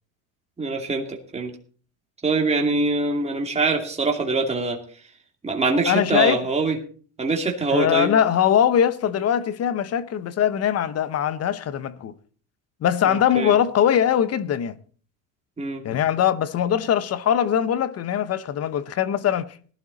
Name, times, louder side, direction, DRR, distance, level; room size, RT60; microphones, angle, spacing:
voice 1, 0.6-1.5 2.2-4.8 5.4-6.8 7.2-8.1 13.1-13.5 15.6-15.8, right 3 dB, 15° right, 2.5 m, -24 dB
voice 2, 5.9-6.4 7.7-12.1 12.8-14.7 15.8-19.6, left 9 dB, 30° left, 0.8 m, -21 dB
17.5 x 12.0 x 4.0 m
supercardioid pair, 120°, 47 cm